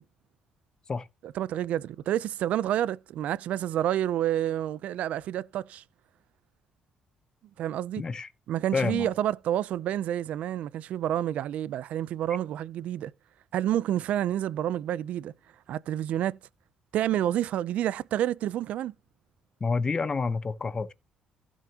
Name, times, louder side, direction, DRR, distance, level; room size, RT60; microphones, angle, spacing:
voice 1, 1.2-5.8 7.6-8.0 8.5-13.1 13.5-15.3 15.7-16.4 16.9-18.9, right 11 dB, 70° right, 0.5 m, -29 dB
voice 2, 8.0-8.3 8.7-9.1 19.6-20.9, left 4 dB, 30° left, 0.9 m, -28 dB
16.0 x 6.3 x 2.9 m
cardioid pair, 105°, 2 cm